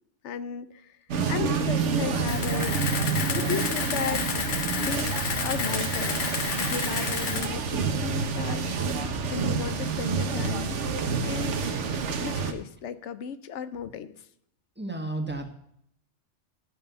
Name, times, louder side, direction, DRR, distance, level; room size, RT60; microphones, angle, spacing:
voice 1, 0.2-1.0 1.3-2.8 3.3-4.3 4.8-6.2 6.6-10.8 11.2-11.6 12.2-14.1, left 8 dB, 80° left, 13 dB, 1.0 m, -35 dB
sound 1, 1.1-12.5, right 5 dB, 85° right, 1.3 m, -28 dB
Camera, 2.3-7.5, left 6 dB, 50° left, 0.9 m, -31 dB
voice 2, 14.8-15.5, right 2 dB, 10° right, 4 dB, 1.3 m, -32 dB
13.0 x 5.5 x 7.9 m, 0.72 s
omnidirectional pair, 1.2 m